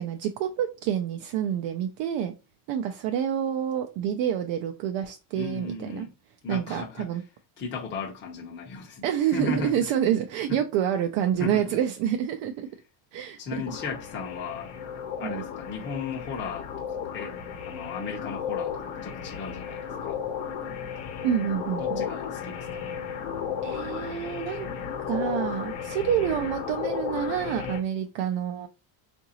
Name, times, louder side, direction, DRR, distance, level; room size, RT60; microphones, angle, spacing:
voice 1, 0.0-2.3 2.7-6.1 6.5-7.2 9.0-12.7 13.1-13.4 15.2-15.4 21.2-22.1 23.6-24.7 25.1-28.7, right 9 dB, 70° right, 0.6 m, -28 dB
voice 2, 5.4-6.1 6.4-7.2 7.6-9.9 10.5-10.6 11.4-11.8 13.4-14.7 15.2-17.4 17.7-20.2 21.8-22.9, left 5 dB, 25° left, 0.6 m, -36 dB
sound 1, 13.7-27.8, left 7 dB, 75° left, 0.9 m, -34 dB
3.8 x 2.6 x 2.8 m
cardioid pair, 160°, 46 cm